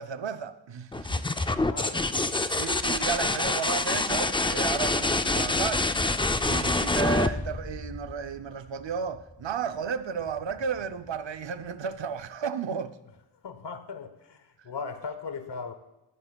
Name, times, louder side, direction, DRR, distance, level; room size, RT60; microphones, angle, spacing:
voice 1, 0.0-1.2 2.6-5.9 6.4-12.9, right 7 dB, 65° right, 0.7 m, -33 dB
sound 1, 0.9-8.5 10.3-10.8, left 2 dB, 10° left, 0.3 m, -27 dB
voice 2, 1.2-2.5 8.4-8.5 13.4-15.7, left 5 dB, 60° left, 1.1 m, -39 dB
21.0 x 9.4 x 2.3 m
wide cardioid pair, 115°, 48 cm